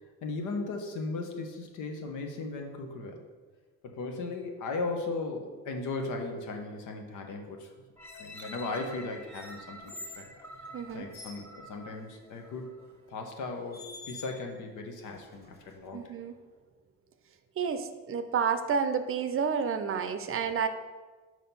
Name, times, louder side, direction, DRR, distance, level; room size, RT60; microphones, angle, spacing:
voice 1, 0.2-3.2 3.8-7.7 8.1-10.3 10.9-12.7 13.1-16.2, left 3 dB, 85° left, 3 dB, 1.0 m, -37 dB
sound 1, 8.0-12.9 13.5-13.6, equal, 5° left, 0.9 m, -48 dB
sound 2, 9.3-10.3 10.9-11.5 12.8-13.0 13.7-14.6 15.0-15.9, left 2 dB, 35° left, 1.1 m, -47 dB
voice 2, 10.7-11.0 15.9-16.3 17.6-20.7, right 6 dB, 45° right, 9 dB, 0.5 m, -30 dB
4.6 x 4.2 x 5.4 m, 1.4 s
cardioid pair, 90°, 30 cm